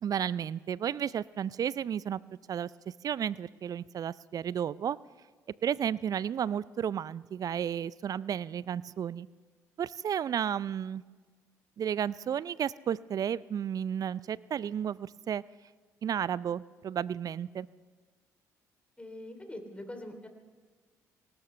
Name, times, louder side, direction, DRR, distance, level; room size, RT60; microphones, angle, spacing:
voice 1, 0.0-2.2 2.5-2.7 3.0-5.0 5.6-9.3 9.8-11.0 11.8-15.4 16.0-17.7, right 9 dB, 45° right, 21 dB, 0.4 m, -32 dB
voice 2, 19.0-20.3, left 1 dB, 15° left, 5 dB, 3.1 m, -43 dB
24.0 x 18.0 x 3.3 m, 1.5 s
hypercardioid pair, 50°, 9 cm